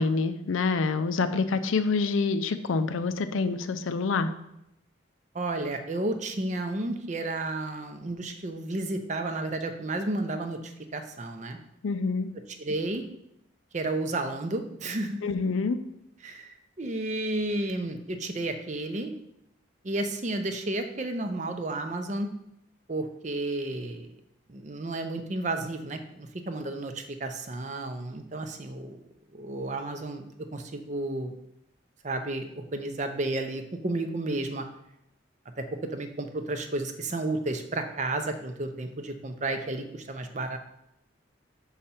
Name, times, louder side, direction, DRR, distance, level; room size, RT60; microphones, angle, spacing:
voice 1, 0.0-4.3 11.8-12.3 15.2-15.8, left 4 dB, 85° left, 10 dB, 0.5 m, -26 dB
voice 2, 5.3-11.6 12.6-13.0 13.7-15.2 16.2-19.1 19.8-22.3 22.9-24.1 24.5-29.0 29.3-30.3 30.5-31.3 32.0-34.6 35.6-35.7 35.9-40.6, right 2 dB, 35° right, 7 dB, 0.6 m, -32 dB
5.5 x 5.0 x 4.3 m, 0.81 s
head